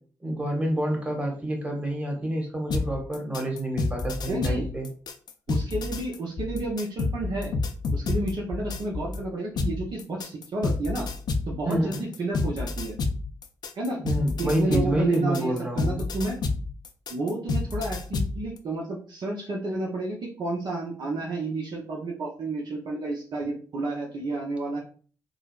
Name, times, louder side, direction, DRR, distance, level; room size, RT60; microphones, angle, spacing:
voice 1, 0.2-4.9 11.6-12.1 14.0-16.0, right 1 dB, 15° right, 0 dB, 1.4 m, -28 dB
sound 1, 2.7-9.2 9.6-18.4, left 3 dB, 55° left, 0.5 m, -29 dB
voice 2, 4.3-4.7 5.5-7.5 7.9-11.1 11.5-12.9 13.7-14.0 14.4-16.4 17.1-24.8, right 2 dB, 55° right, -2 dB, 0.7 m, -31 dB
3.8 x 2.0 x 2.4 m, 0.42 s
hypercardioid pair, 40°, 9 cm